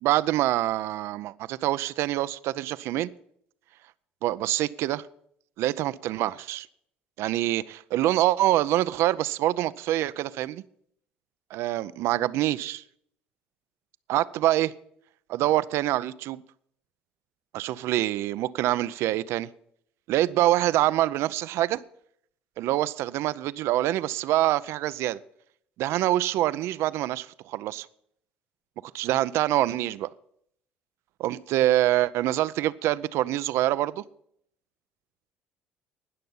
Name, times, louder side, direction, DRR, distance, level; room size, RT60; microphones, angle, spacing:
voice 1, 0.0-3.1 4.2-5.1 5.6-6.7 7.2-10.6 11.5-12.8 14.1-14.7 15.3-16.4 17.5-19.5 20.1-21.8 22.6-25.2 25.8-27.9 28.9-30.1 31.2-34.0, right 14 dB, 70° right, 17 dB, 0.5 m, -25 dB
19.5 x 6.7 x 5.5 m, 0.68 s
supercardioid pair, 75°, 5 cm